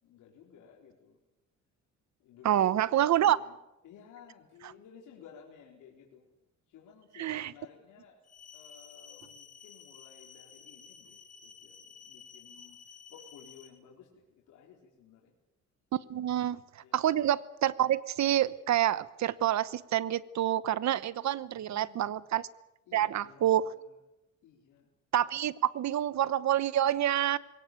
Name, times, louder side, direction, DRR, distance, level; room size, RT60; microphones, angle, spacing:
voice 1, 0.0-1.2 2.2-3.6 3.8-6.3 6.7-8.2 8.5-15.3 16.8-17.0 21.5-22.2 22.9-24.0 24.4-24.9, left 7 dB, 90° left, -1 dB, 4.3 m, -56 dB
voice 2, 2.4-3.4 7.2-7.5 15.9-16.6 16.9-22.5 22.9-23.7 25.1-27.4, right 12 dB, 65° right, 18 dB, 1.0 m, -27 dB
sound 1, 8.2-13.7, left 6 dB, 55° left, 3.7 m, -53 dB
22.0 x 18.0 x 9.3 m, 0.93 s
cardioid pair, 90°, 30 cm